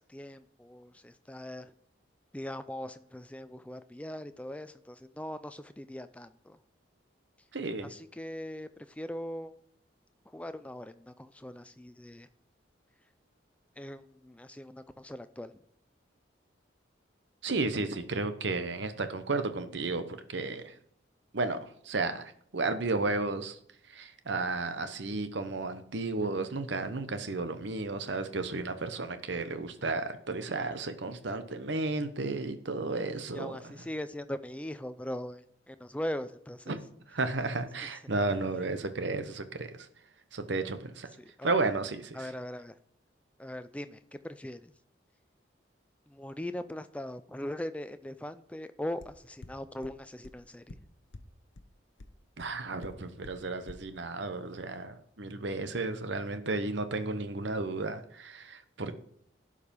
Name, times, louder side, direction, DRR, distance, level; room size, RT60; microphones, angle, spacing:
voice 1, 0.0-1.7 2.3-6.6 7.8-9.5 10.3-12.3 13.8-15.6 33.3-36.8 37.8-37.9 38.6-38.7 41.2-41.5 42.1-42.8 43.4-44.7 46.1-50.8, left 1 dB, 5° left, 11 dB, 0.4 m, -40 dB
voice 2, 7.5-7.9 17.4-20.8 21.3-23.6 23.9-33.7 36.7-39.9 40.3-41.1 41.4-42.3 52.4-58.9, right 3 dB, 65° right, 10 dB, 0.9 m, -33 dB
sound 1, 49.0-49.1 49.4-49.5 49.8-49.9 50.2-50.3 50.7-50.8 51.1-51.2 51.6-51.7 52.0-52.1 52.4-52.5 52.8-52.9 53.2-53.3 53.7-53.8, left 2 dB, 75° left, 0.9 m, -45 dB
11.5 x 4.9 x 5.3 m, 0.66 s
head